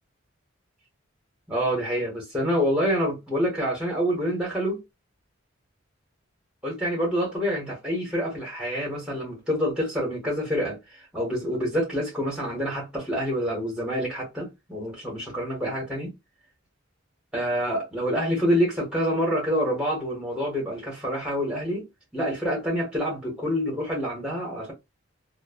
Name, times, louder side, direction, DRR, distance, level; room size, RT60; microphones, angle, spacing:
voice 1, 1.5-4.8 6.6-10.8 11.1-16.1 17.3-21.8 22.1-24.7, equal, 5° right, 1.2 m, -27 dB
3.1 x 2.1 x 2.3 m
head